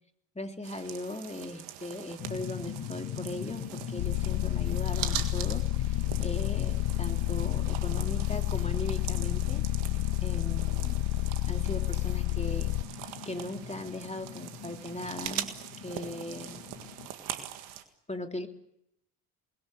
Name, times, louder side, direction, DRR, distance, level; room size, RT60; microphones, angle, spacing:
voice 1, 0.3-5.9 6.2-9.6 10.2-11.1 11.5-12.7 13.3-15.5 15.8-16.5 18.1-18.5, left 1 dB, 15° left, 5 dB, 3.3 m, -39 dB
sound 1, 0.6-17.8, right 12 dB, 85° right, 1.9 m, -42 dB
sound 2, 2.2-17.1, left 8 dB, 55° left, 2.0 m, -41 dB
sound 3, 4.0-12.8, left 15 dB, 70° left, 1.0 m, -30 dB
29.0 x 21.0 x 6.9 m, 0.77 s
hypercardioid pair, 45°, 47 cm